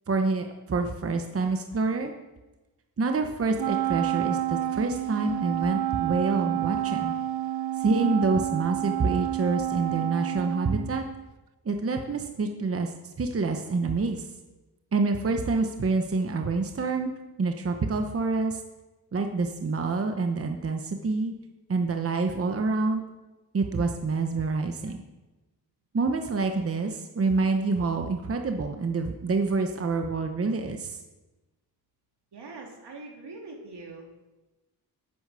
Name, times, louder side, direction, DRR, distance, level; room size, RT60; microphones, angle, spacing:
voice 1, 0.1-2.1 3.0-7.1 7.8-11.0 11.6-12.9 13.2-14.2 14.9-17.1 17.4-18.6 19.1-21.3 21.7-23.0 23.5-25.0 25.9-31.0, right 3 dB, 35° right, 5 dB, 0.9 m, -27 dB
Wind instrument woodwind instrument, 3.6-11.2, right 14 dB, 70° right, 0.5 m, -29 dB
voice 2, 32.3-34.0, right 3 dB, 85° right, 0 dB, 3.0 m, -43 dB
10.0 x 10.0 x 6.8 m, 1.1 s
wide cardioid pair, 175°, 39 cm